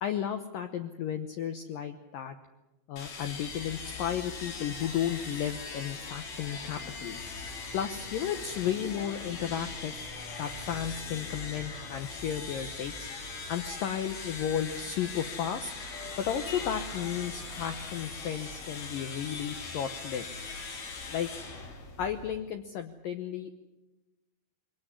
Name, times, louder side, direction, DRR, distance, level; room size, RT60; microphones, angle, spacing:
voice 1, 0.0-2.4 2.9-7.3 7.7-10.0 10.4-13.2 13.5-15.7 16.2-20.3 21.1-21.3 22.0-23.5, left 9 dB, 90° left, 7 dB, 1.9 m, -33 dB
sound 1, 3.0-22.4, left 4 dB, 65° left, 5.8 m, -40 dB
22.5 x 19.0 x 9.8 m, 1.0 s
omnidirectional pair, 5.5 m